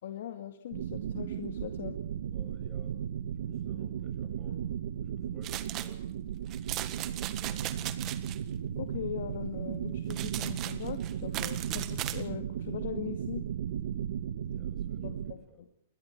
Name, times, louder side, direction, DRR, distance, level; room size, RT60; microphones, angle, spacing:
voice 1, 0.0-2.0 8.8-13.4 15.0-15.7, left 10 dB, 65° left, 6 dB, 2.2 m, -40 dB
sound 1, 0.7-15.3, right 9 dB, 70° right, 1.5 m, -36 dB
voice 2, 2.2-3.0 3.4-4.7 5.0-6.0 6.8-8.0 14.5-15.7, right 2 dB, 10° right, 3 dB, 7.5 m, -56 dB
sound 2, 5.4-5.9 6.5-8.4 10.1-12.2, right 14 dB, 30° right, 1.7 m, -38 dB
29.0 x 22.0 x 4.7 m, 0.71 s
hypercardioid pair, 150°, 0 cm